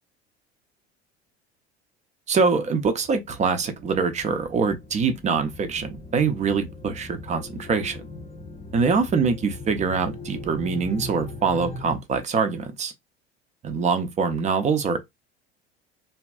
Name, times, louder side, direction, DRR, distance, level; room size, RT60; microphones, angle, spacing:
voice 1, 2.3-8.0 8.7-12.9 13.6-15.1, right 5 dB, 20° right, 0.5 m, -24 dB
sound 1, 2.7-12.0, left 2 dB, 20° left, 0.6 m, -40 dB
2.6 x 2.2 x 2.2 m
figure-of-eight pair, 70°, 32 cm